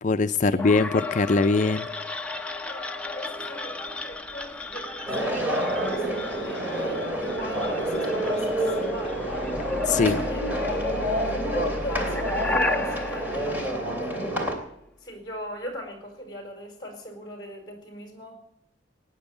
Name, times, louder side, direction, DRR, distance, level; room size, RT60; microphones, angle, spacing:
voice 1, 0.0-1.9 9.9-10.2, left 3 dB, 45° left, 10 dB, 0.5 m, -22 dB
sound 1, 0.6-14.5, left 2 dB, 5° left, 0.9 m, -34 dB
voice 2, 2.6-9.2 9.9-10.9 11.3-14.5 15.0-18.4, equal, 25° left, 4 dB, 4.8 m, -39 dB
sound 2, 5.1-14.5, equal, 10° right, 3.0 m, -28 dB
17.5 x 9.7 x 8.4 m, 0.77 s
head